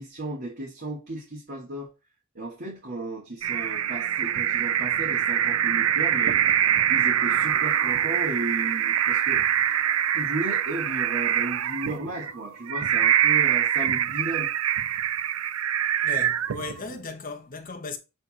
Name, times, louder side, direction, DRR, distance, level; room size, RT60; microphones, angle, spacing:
voice 1, 0.0-1.9 2.3-6.4 6.9-9.5 10.1-14.5, right 2 dB, 50° right, 2.5 m, -34 dB
sound 1, 3.4-16.9, right 10 dB, 70° right, 0.4 m, -24 dB
voice 2, 16.0-18.0, left 3 dB, 40° left, 1.2 m, -36 dB
7.2 x 4.3 x 4.3 m
head